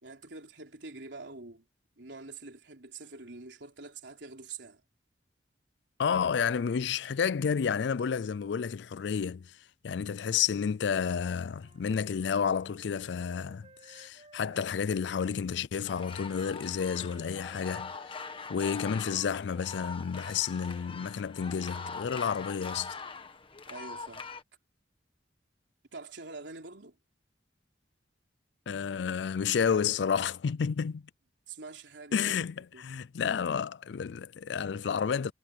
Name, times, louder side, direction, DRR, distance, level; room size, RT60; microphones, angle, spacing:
voice 1, 0.0-1.6 2.0-4.8 23.7-24.3 25.9-27.0 31.5-32.4 32.7-32.8, right 3 dB, 85° right, 3.6 m, -45 dB
voice 2, 6.0-9.6 9.8-17.9 18.5-23.0 28.7-31.0 32.1-35.3, left 7 dB, 70° left, 0.4 m, -30 dB
Wind instrument woodwind instrument, 11.4-15.5 15.8-20.1, right 2 dB, 35° right, 5.3 m, -59 dB
sound 1, 15.9-24.4, left 4 dB, 30° left, 1.5 m, -43 dB
head